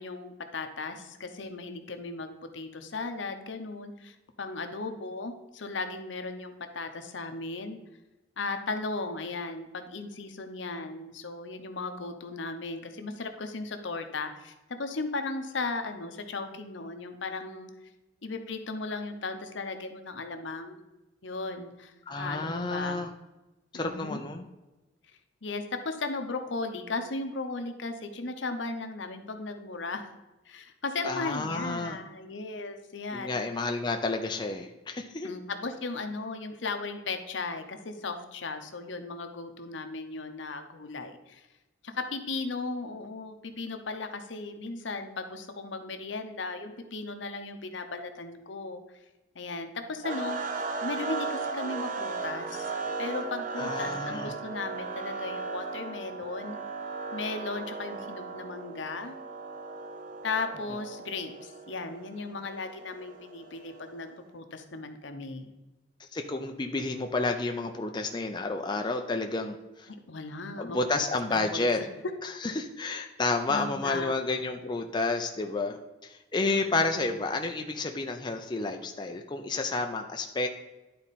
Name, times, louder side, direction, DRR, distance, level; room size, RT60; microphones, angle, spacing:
voice 1, 0.0-7.8 8.4-17.7 18.2-20.8 21.2-23.0 23.7-24.2 25.4-30.1 30.5-33.4 35.2-41.5 41.8-48.8 49.3-52.7 53.0-56.6 57.1-59.2 60.2-65.5 69.9-70.8 71.3-71.9 73.5-74.1 76.4-77.0, left 3 dB, 70° left, 7 dB, 0.8 m, -36 dB
voice 2, 22.1-23.1 23.7-24.5 31.0-32.0 33.1-35.3 53.6-54.3 66.0-69.9 70.6-71.8 72.2-75.8 76.0-80.5, left 3 dB, 25° left, 4 dB, 0.4 m, -30 dB
sound 1, 50.0-64.1, right 4 dB, 45° right, 0.7 m, -36 dB
11.0 x 4.3 x 4.1 m, 1.1 s
head